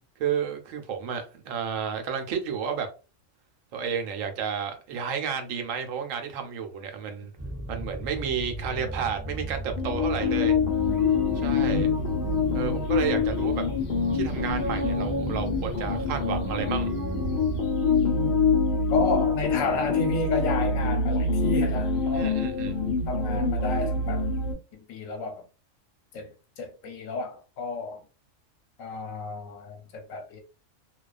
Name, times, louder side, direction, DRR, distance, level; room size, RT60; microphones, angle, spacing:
voice 1, 0.2-2.9 3.7-7.3 7.7-10.6 11.4-11.9 12.5-13.6 14.1-16.9 22.1-22.7, right 7 dB, 80° right, 1.0 m, -31 dB
sound 1, 7.4-17.6, right 1 dB, 20° right, 0.4 m, -36 dB
sound 2, 9.8-24.5, left 4 dB, 60° left, 0.9 m, -26 dB
voice 2, 11.4-12.0 17.9-18.4 18.9-22.4 23.1-24.2 24.7-25.5 26.1-28.0 28.8-30.4, left 4 dB, 80° left, 1.1 m, -31 dB
2.3 x 2.2 x 2.3 m
omnidirectional pair, 1.4 m